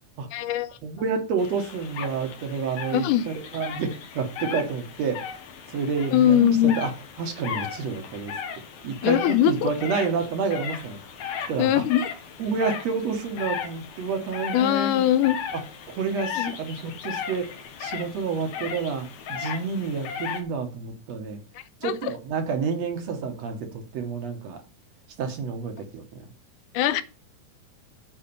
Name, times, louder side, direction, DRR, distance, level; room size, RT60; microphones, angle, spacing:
voice 1, 0.3-0.8 2.9-3.2 6.1-6.8 9.0-9.7 11.6-12.1 14.5-15.4 16.4-16.5 21.6-21.9 26.7-27.0, left 11 dB, 90° left, 2.2 m, -21 dB
voice 2, 0.8-5.4 5.7-6.9 7.2-8.4 8.8-11.0 11.5-11.8 12.4-15.0 15.5-15.6 15.9-21.4 21.8-24.6 25.2-26.3, right 5 dB, 60° right, 2.3 m, -29 dB
sound 1, 1.4-20.4, left 7 dB, 70° left, 2.5 m, -36 dB
8.7 x 4.3 x 6.8 m
omnidirectional pair, 3.6 m